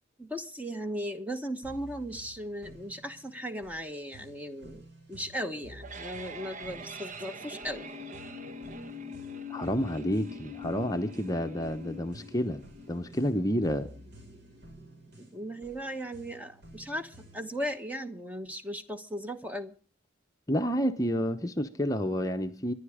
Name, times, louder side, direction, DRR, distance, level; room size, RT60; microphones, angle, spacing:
voice 1, 0.2-7.9 15.2-19.7, equal, 10° right, 1.1 m, -37 dB
sound 1, 1.6-17.6, equal, 60° right, 5.7 m, -53 dB
sound 2, 5.5-16.5, left 2 dB, 40° right, 1.1 m, -44 dB
voice 2, 9.5-12.6 12.9-13.9 20.5-22.7, equal, 20° left, 0.9 m, -29 dB
25.0 x 11.0 x 4.9 m
head